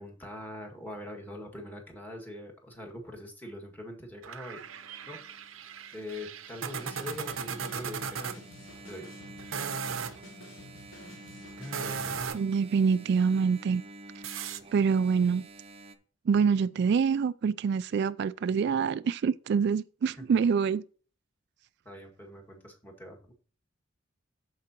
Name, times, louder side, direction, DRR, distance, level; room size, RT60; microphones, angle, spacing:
voice 1, 0.0-5.2 5.9-8.4 8.9-9.1 11.6-12.4 20.2-20.3 21.8-23.2, left 1 dB, 10° left, 1.9 m, -43 dB
sound 1, 4.2-8.4 9.4-10.2 11.6-12.6 14.2-14.6, right 6 dB, 90° right, 0.8 m, -37 dB
Engine, 4.6-15.9, right 1 dB, 30° right, 0.7 m, -50 dB
sound 2, 6.8-12.3, left 1 dB, 75° left, 1.2 m, -50 dB
voice 2, 12.3-13.8 14.7-15.4 16.3-20.8, right 6 dB, 55° right, 0.3 m, -26 dB
14.0 x 4.8 x 2.9 m
head